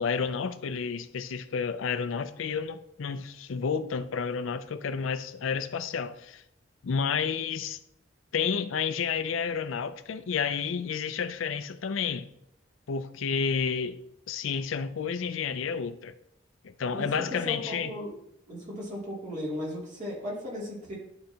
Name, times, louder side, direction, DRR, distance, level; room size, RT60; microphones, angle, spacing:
voice 1, 0.0-6.4 6.8-7.8 8.3-12.3 12.9-14.0 14.3-16.1 16.6-17.9, left 6 dB, 85° left, 12 dB, 0.5 m, -30 dB
voice 2, 16.9-18.1 18.5-21.0, left 1 dB, 40° right, -5 dB, 2.6 m, -36 dB
11.0 x 3.9 x 2.9 m, 0.78 s
head